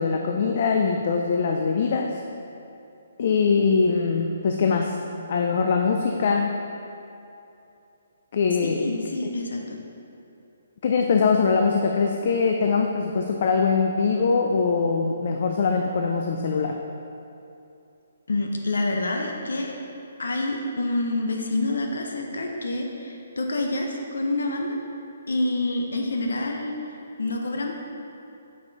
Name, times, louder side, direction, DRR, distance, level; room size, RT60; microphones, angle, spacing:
voice 1, 0.0-2.1 3.2-5.0 5.3-6.5 8.3-8.9 10.8-16.8, left 5 dB, 50° left, 3 dB, 0.4 m, -22 dB
voice 2, 8.6-9.8 18.3-19.7 20.2-24.8 25.3-27.7, left 2 dB, 85° left, 2 dB, 0.7 m, -27 dB
6.5 x 5.6 x 4.0 m, 2.7 s
hypercardioid pair, 155°, 0 cm